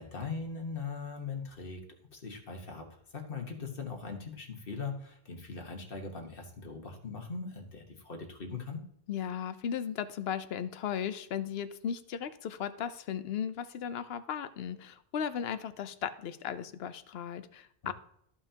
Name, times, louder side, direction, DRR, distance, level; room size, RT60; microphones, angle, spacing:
voice 1, 0.0-1.8 2.1-8.8, left 4 dB, 60° left, 3 dB, 1.5 m, -40 dB
voice 2, 9.1-17.9, left 8 dB, 80° left, 13 dB, 0.9 m, -36 dB
14.0 x 5.7 x 2.8 m, 0.73 s
omnidirectional pair, 1.0 m